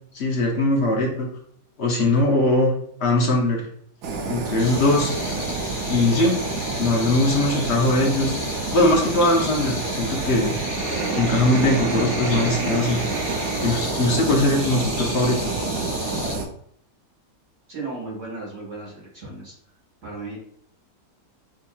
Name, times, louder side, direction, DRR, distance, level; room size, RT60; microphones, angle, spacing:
voice 1, 0.1-1.3 1.8-2.7 3.0-3.7 4.3-5.1 5.6-6.4 6.8-8.3 8.7-10.6 11.1-13.0 13.6-15.5, left 2 dB, 50° left, 0 dB, 0.9 m, -21 dB
Fire, 4.0-16.4, right 3 dB, 75° right, 1.2 m, -28 dB
sound 1, 4.6-16.4, left 3 dB, 85° left, 1.5 m, -34 dB
voice 2, 17.7-19.5 20.0-20.4, right 3 dB, 45° right, -4 dB, 2.0 m, -35 dB
6.1 x 2.8 x 2.3 m, 0.64 s
omnidirectional pair, 1.8 m